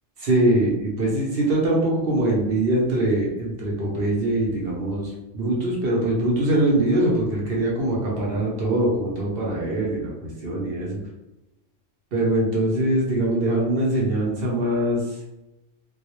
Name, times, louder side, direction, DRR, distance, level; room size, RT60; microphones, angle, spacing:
voice 1, 0.2-10.1 10.4-11.0 12.1-15.2, right 1 dB, 60° right, -3 dB, 0.7 m, -23 dB
2.2 x 2.0 x 2.9 m, 0.95 s
omnidirectional pair, 1.3 m